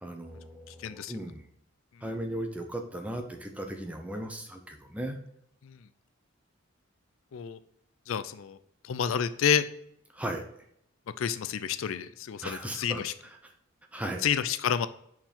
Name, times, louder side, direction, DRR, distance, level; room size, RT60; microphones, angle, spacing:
voice 1, 0.0-1.5 2.0-5.2 10.1-10.4 12.4-13.5 13.9-14.2, right 1 dB, 5° right, 4 dB, 0.8 m, -37 dB
voice 2, 0.8-1.1 5.6-5.8 7.3-7.6 8.1-8.6 8.8-9.6 11.2-13.1 14.2-14.9, left 8 dB, 75° left, 13 dB, 0.4 m, -29 dB
5.6 x 4.7 x 4.3 m, 0.73 s
head